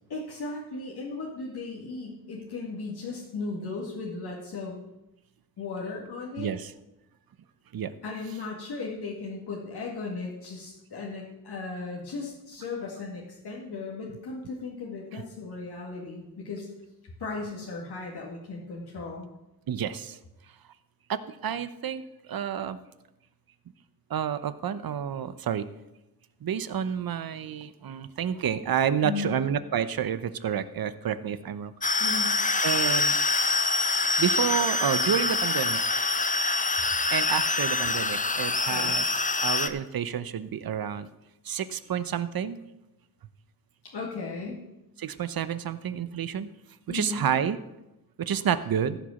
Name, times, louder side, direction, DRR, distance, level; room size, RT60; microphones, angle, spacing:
voice 1, 0.1-4.8 5.6-6.5 8.0-16.7 17.2-19.3 29.0-29.3 32.0-32.4 38.7-38.9 43.8-44.6 46.9-47.3, left 3 dB, 80° left, -3 dB, 2.0 m, -36 dB
voice 2, 6.4-6.7 7.7-7.9 15.1-15.2 19.7-20.2 21.1-22.8 24.1-25.6 26.4-31.7 32.6-33.2 34.2-35.8 37.1-39.0 39.4-41.1 41.4-42.6 45.0-46.5 46.9-47.6 48.2-49.0, right 8 dB, 65° right, 13 dB, 0.8 m, -29 dB
sound 1, 31.8-39.7, left 3 dB, 20° left, 0.8 m, -25 dB
15.0 x 5.1 x 7.1 m, 0.95 s
cardioid pair, 70°, 38 cm